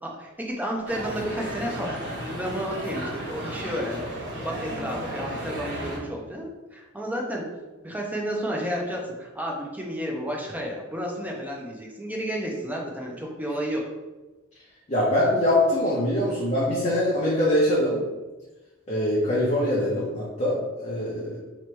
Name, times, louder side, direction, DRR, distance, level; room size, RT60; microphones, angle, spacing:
voice 1, 0.0-7.4 7.8-13.8, equal, 10° right, -1 dB, 0.7 m, -32 dB
sound 1, 0.9-6.0, right 1 dB, 60° right, 1.4 m, -34 dB
voice 2, 14.9-18.0 18.9-21.4, left 1 dB, 35° left, -7 dB, 0.9 m, -23 dB
3.2 x 3.1 x 4.5 m, 1.2 s
head